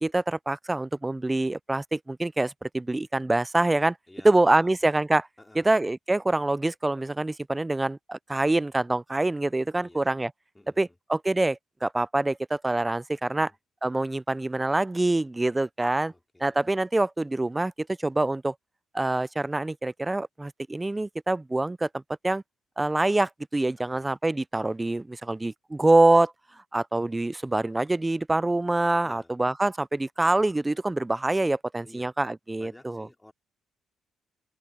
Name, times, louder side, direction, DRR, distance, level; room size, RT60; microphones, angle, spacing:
voice 1, 0.0-4.0 4.2-5.3 5.6-10.3 10.8-13.5 13.8-16.1 16.4-18.5 18.9-22.4 22.8-26.3 26.7-33.1, right 2 dB, 15° right, 0.4 m, -25 dB
voice 2, 4.1-4.7 5.4-5.8 9.8-10.2 10.5-11.0 13.3-13.6 16.1-16.6 23.8-24.1 29.0-29.3 31.8-32.1 32.6-33.3, left 1 dB, 10° left, 3.4 m, -53 dB
open air
cardioid pair, 90°, 0 cm